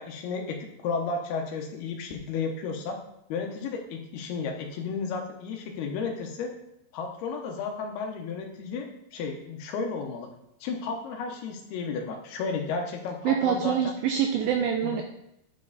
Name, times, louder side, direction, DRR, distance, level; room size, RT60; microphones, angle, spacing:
voice 1, 0.0-3.0 3.3-6.5 6.9-10.3 10.6-13.9 14.8-15.0, left 4 dB, 75° left, 3 dB, 2.8 m, -33 dB
voice 2, 13.2-15.0, right 8 dB, 85° right, 4 dB, 2.1 m, -25 dB
9.5 x 5.3 x 4.0 m, 0.80 s
omnidirectional pair, 4.9 m